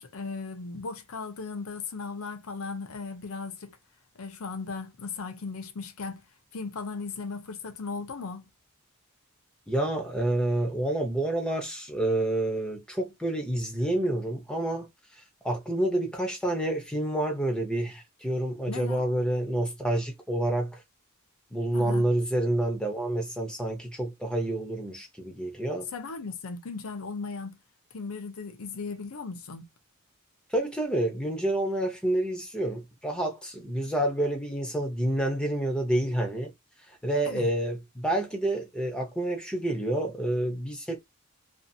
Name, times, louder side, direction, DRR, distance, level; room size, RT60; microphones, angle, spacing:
voice 1, 0.0-3.8 4.1-6.2 6.5-8.4 18.7-19.0 21.7-22.1 25.9-27.6 27.9-29.6 33.8-33.9 37.2-37.5, left 4 dB, 85° left, 0.6 m, -37 dB
voice 2, 9.7-14.9 15.4-20.8 21.5-25.9 30.5-36.5 36.9-41.0, right 1 dB, 5° left, 0.6 m, -28 dB
2.6 x 2.5 x 2.6 m
head